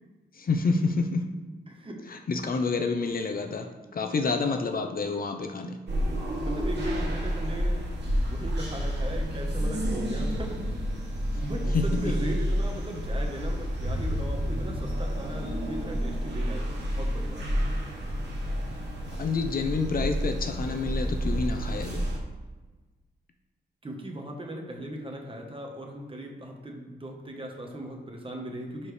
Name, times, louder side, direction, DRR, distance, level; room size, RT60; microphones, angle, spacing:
voice 1, 0.3-1.3 2.1-5.8 11.3-11.5 11.7-11.8 19.2-22.1, left 4 dB, 50° left, 5 dB, 0.7 m, -28 dB
voice 2, 1.7-2.0 6.4-10.6 11.1-17.5 23.8-28.9, right 1 dB, 30° right, 1 dB, 1.3 m, -38 dB
sound 1, 5.9-22.2, equal, 65° right, 1.5 m, -30 dB
12.0 x 4.3 x 3.4 m, 1.3 s
wide cardioid pair, 95°, 19 cm